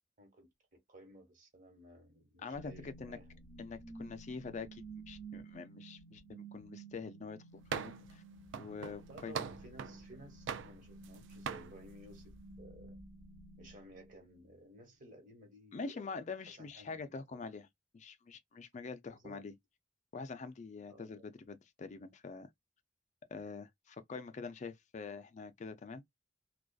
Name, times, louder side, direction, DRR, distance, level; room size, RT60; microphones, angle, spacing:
voice 1, 0.9-3.3 3.7-3.8 9.1-13.0 13.6-17.4 19.1-19.4 20.9-21.2, right 1 dB, 45° right, 1.2 m, -56 dB
voice 2, 2.4-3.2 3.6-8.2 8.6-9.5 15.7-17.7 17.9-19.5 20.1-22.5 23.3-26.0, left 4 dB, 40° left, 0.4 m, -45 dB
sound 1, 2.5-14.5, right 3 dB, 30° right, 1.1 m, -53 dB
sound 2, 7.7-8.1 8.5-10.0 10.5-11.2 11.5-11.7, right 7 dB, 80° right, 0.4 m, -41 dB
2.4 x 2.3 x 2.3 m
head